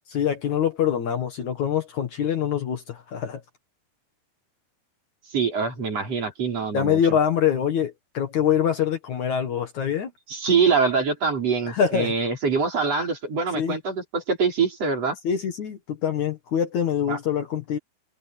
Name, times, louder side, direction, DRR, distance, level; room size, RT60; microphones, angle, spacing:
voice 1, 0.1-3.4 6.7-10.1 11.7-12.1 13.5-13.8 15.2-17.8, left 8 dB, 55° left, 2.6 m, -24 dB
voice 2, 5.3-7.0 10.3-15.2 17.1-17.2, right 5 dB, 40° right, 5.6 m, -24 dB
omnidirectional pair, 4.7 m